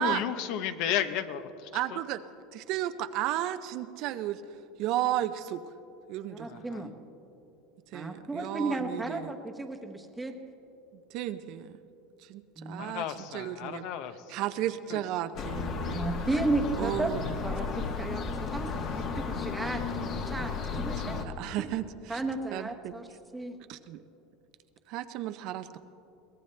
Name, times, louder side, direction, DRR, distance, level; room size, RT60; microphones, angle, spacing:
voice 1, 0.0-2.0 6.5-6.8 12.8-14.1 14.9-15.0, left 10 dB, 55° left, 11 dB, 0.8 m, -33 dB
voice 2, 1.7-2.2 2.5-4.4 4.8-5.6 6.1-6.9 7.9-9.3 11.1-11.8 12.2-13.9 14.3-16.1 16.8-17.4 20.7-22.2 22.5-22.9 23.7-24.0 24.9-25.8, right 13 dB, 50° right, 11 dB, 0.5 m, -34 dB
voice 3, 6.3-6.9 7.9-10.4 12.6-12.8 15.9-17.1 17.4-21.2 22.1-23.1 23.3-23.6, right 2 dB, 5° right, 4 dB, 1.0 m, -34 dB
sound 1, 15.3-21.2, left 5 dB, 40° left, 1.2 m, -34 dB
22.5 x 18.0 x 3.3 m, 2.8 s
supercardioid pair, 155°, 0 cm